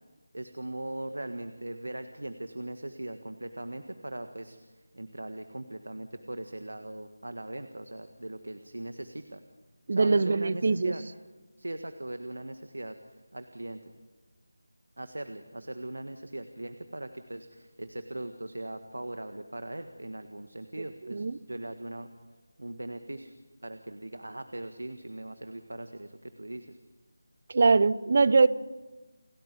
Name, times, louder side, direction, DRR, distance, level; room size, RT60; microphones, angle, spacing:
voice 1, 0.3-4.6 4.9-9.4 9.9-11.0 11.6-13.0 13.3-13.8 15.0-22.1 22.6-23.3 23.6-26.8, right 1 dB, 90° right, 8 dB, 1.6 m, -40 dB
voice 2, 9.9-10.9 21.1-21.4 27.5-28.5, right 4 dB, 45° right, 18 dB, 0.8 m, -22 dB
29.0 x 10.5 x 9.7 m, 1.2 s
figure-of-eight pair, 170°, 0 cm